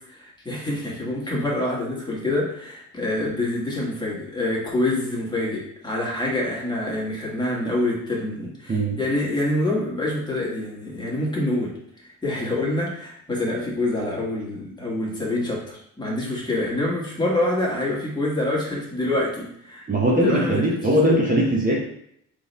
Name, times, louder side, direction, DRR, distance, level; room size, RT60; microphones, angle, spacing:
voice 1, 0.1-11.7 12.0-21.2, left 1 dB, 15° left, -4 dB, 1.8 m, -26 dB
voice 2, 8.7-9.0 19.9-21.8, right 1 dB, 25° right, -3 dB, 1.0 m, -20 dB
3.8 x 3.4 x 4.2 m, 0.71 s
cardioid pair, 90°, 30 cm